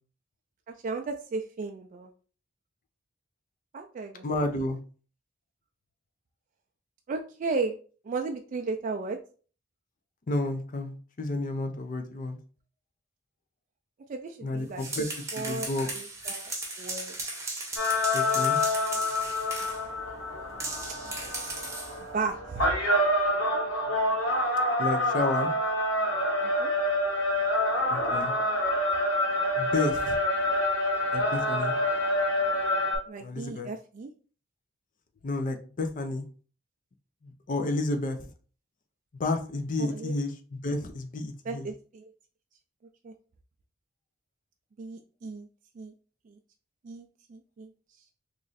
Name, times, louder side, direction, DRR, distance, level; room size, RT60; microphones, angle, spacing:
voice 1, 0.7-2.1 3.7-4.2 7.1-7.8 8.0-9.2 14.1-14.8 15.3-15.7 15.9-16.5 16.8-17.1 22.1-22.7 26.4-26.7 33.1-34.1 39.8-40.1 41.4-42.1 43.0-43.1 44.8-45.5 45.8-45.9 46.8-47.7, right 3 dB, 40° right, 3 dB, 0.3 m, -34 dB
voice 2, 4.2-4.8 10.3-12.4 14.4-15.1 15.4-15.9 18.1-18.6 24.8-25.5 27.9-28.3 29.6-30.2 31.1-31.7 33.2-33.7 35.2-36.2 37.5-38.2 39.2-41.7, left 2 dB, 40° left, 6 dB, 0.5 m, -31 dB
sound 1, 14.6-19.8 20.6-22.0, right 2 dB, 15° right, 0.8 m, -36 dB
sound 2, 17.8-33.0, left 1 dB, 90° left, 1.6 m, -27 dB
3.0 x 2.5 x 3.9 m, 0.40 s
head